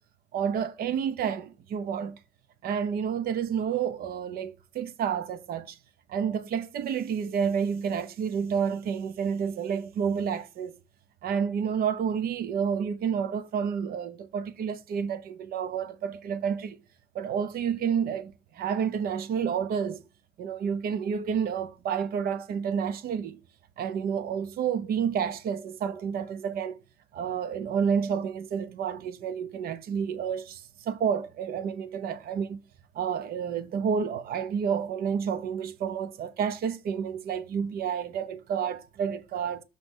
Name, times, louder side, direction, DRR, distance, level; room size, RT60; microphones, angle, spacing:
voice 1, 0.3-2.2 2.6-5.8 6.1-10.7 11.2-16.8 17.1-20.0 20.4-23.4 23.8-26.8 27.1-32.6 32.9-39.6, right 7 dB, 65° right, 0.9 m, -30 dB
6.9 x 3.3 x 6.1 m
cardioid pair, 110°, 17 cm